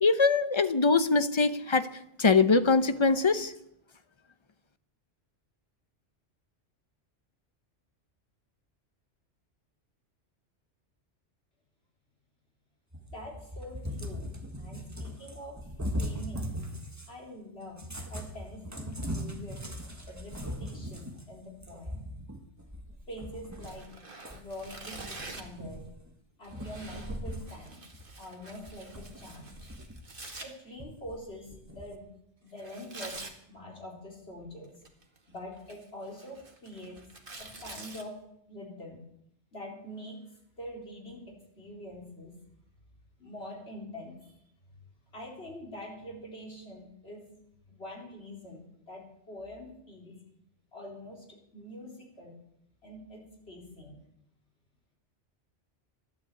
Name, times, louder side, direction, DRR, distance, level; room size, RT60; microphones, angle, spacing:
voice 1, 0.0-1.9 2.2-3.5, left 4 dB, 30° left, 11 dB, 0.8 m, -23 dB
Cat, 12.9-17.2 17.7-23.9 24.2-26.1 26.5-27.6 27.9-28.1 28.6-30.2 30.8-32.0, equal, 15° right, 1.5 m, -40 dB
voice 2, 13.1-14.2 14.6-15.5 16.0-16.6 17.1-17.8 18.1-19.6 20.1-22.0 23.1-23.9 24.3-25.8 26.4-27.8 28.2-29.7 30.4-32.1 32.4-33.2 33.5-34.7 35.3-37.0 37.4-38.2 38.5-39.0 39.5-40.2 40.6-42.4 43.2-44.3 45.1-47.3 47.7-50.2 50.7-51.3 51.5-52.3 52.8-54.0, left 1 dB, 60° left, -1 dB, 4.2 m, -44 dB
Tearing, 23.6-25.6 26.4-30.5 32.6-33.4 34.6-35.2 35.6-38.0, right 2 dB, 50° right, 2.1 m, -46 dB
13.5 x 11.5 x 8.3 m, 0.76 s
omnidirectional pair, 1.2 m